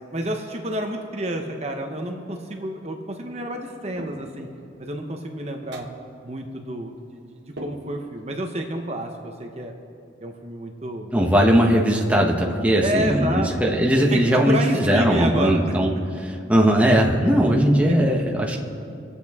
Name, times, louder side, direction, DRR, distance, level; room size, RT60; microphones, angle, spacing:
voice 1, 0.1-4.5 4.8-5.9 6.2-7.2 7.6-9.7 10.2-11.1 12.8-13.5 14.1-15.6 17.9-18.0, right 1 dB, 35° right, 3 dB, 0.8 m, -29 dB
sound 1, 4.0-4.5 5.7-6.1 7.6-8.3, right 1 dB, 70° right, 1.1 m, -40 dB
voice 2, 11.1-18.6, equal, 5° right, -1 dB, 1.0 m, -19 dB
24.5 x 8.2 x 3.6 m, 2.5 s
head